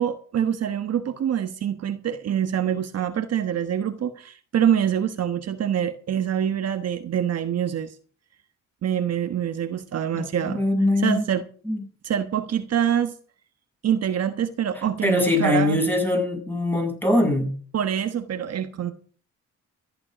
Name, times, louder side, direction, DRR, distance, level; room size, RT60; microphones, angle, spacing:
voice 1, 0.0-7.9 8.8-10.6 11.0-11.4 12.0-13.1 13.8-15.8 17.7-18.9, right 9 dB, 55° right, 1.2 m, -25 dB
voice 2, 10.1-11.2 11.6-11.8 14.7-17.5, left 1 dB, 5° left, 7.8 m, -22 dB
14.0 x 11.5 x 5.1 m
cardioid pair, 90°, 30 cm